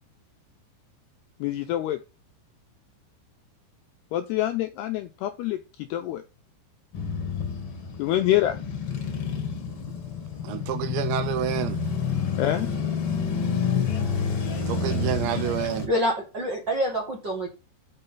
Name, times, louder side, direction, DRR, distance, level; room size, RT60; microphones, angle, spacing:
voice 1, 1.4-2.0 4.1-6.2 8.0-8.6 12.4-12.7, left 13 dB, 85° left, 2.3 m, -26 dB
Male speech man speaking / Motorcycle / Idling, 6.9-15.9, left 6 dB, 55° left, 1.6 m, -29 dB
voice 2, 10.4-11.8 14.7-15.9, right 12 dB, 80° right, 2.8 m, -28 dB
voice 3, 15.8-17.5, equal, 45° right, 1.5 m, -26 dB
6.6 x 5.4 x 5.7 m
omnidirectional pair, 5.4 m